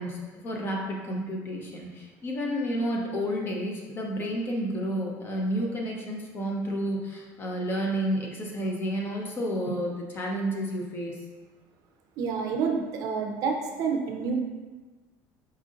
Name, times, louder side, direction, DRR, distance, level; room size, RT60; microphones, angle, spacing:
voice 1, 0.0-11.2, equal, 30° left, -1 dB, 0.7 m, -31 dB
voice 2, 12.2-14.4, right 5 dB, 55° right, 3 dB, 0.5 m, -28 dB
4.2 x 2.5 x 3.7 m, 1.3 s
cardioid pair, 150°, 8 cm